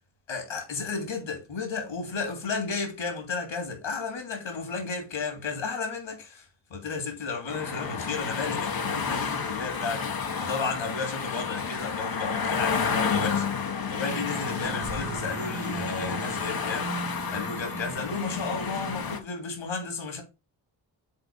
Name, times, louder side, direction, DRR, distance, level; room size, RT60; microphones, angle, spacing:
voice 1, 0.3-10.0 10.4-13.5 13.9-17.1 17.3-20.2, left 4 dB, 70° left, 2.9 m, -33 dB
sound 1, 7.5-19.2, left 6 dB, 45° left, 1.3 m, -31 dB
sound 2, 14.0-19.2, right 5 dB, 35° right, 1.3 m, -39 dB
6.7 x 4.0 x 5.4 m
supercardioid pair, 40°, 48 cm